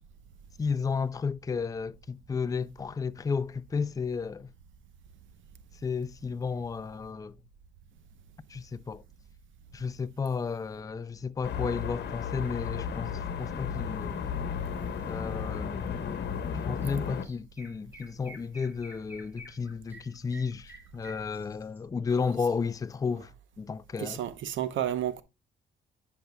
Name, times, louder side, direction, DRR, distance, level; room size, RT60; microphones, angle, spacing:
voice 1, 0.6-4.5 5.8-7.4 8.5-9.0 9.7-14.2 15.0-16.2 16.5-23.3 23.6-24.2, left 5 dB, 20° left, 0.4 m, -33 dB
sound 1, 11.4-17.2, left 7 dB, 60° left, 1.1 m, -34 dB
Chirp tweet, 16.8-16.9 17.2-21.8, equal, 10° right, 2.4 m, -50 dB
voice 2, 24.0-25.2, right 11 dB, 75° right, 0.8 m, -31 dB
10.5 x 5.5 x 2.2 m
cardioid pair, 90°, 20 cm